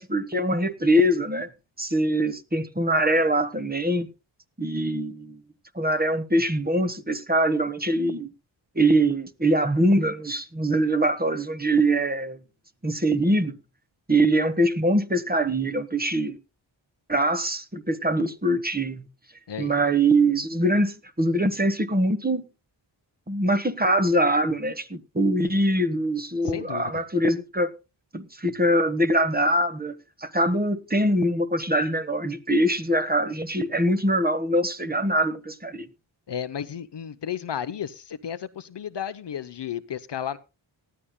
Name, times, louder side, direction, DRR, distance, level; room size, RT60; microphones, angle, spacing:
voice 1, 0.0-1.5 1.8-4.1 4.6-5.4 5.7-8.3 8.7-12.4 12.8-13.5 14.1-16.4 17.1-19.1 19.6-22.4 23.3-27.7 28.1-35.8, right 1 dB, 20° right, 1.4 m, -23 dB
voice 2, 26.4-27.0 36.3-40.4, left 9 dB, 60° left, 0.8 m, -33 dB
19.0 x 12.5 x 2.2 m
cardioid pair, 50°, 48 cm